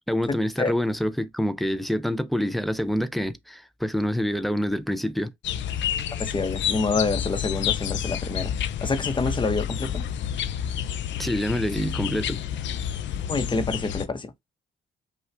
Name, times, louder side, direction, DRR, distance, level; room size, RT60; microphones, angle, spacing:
voice 1, 0.1-5.3 11.2-12.4, equal, ahead, 0.5 m, -26 dB
sound 1, 5.4-14.1, left 9 dB, 70° left, 0.6 m, -29 dB
voice 2, 6.2-8.5 8.8-10.0 13.3-14.3, left 3 dB, 25° left, 1.0 m, -27 dB
5.5 x 2.4 x 3.3 m
cardioid pair, 90°, 20 cm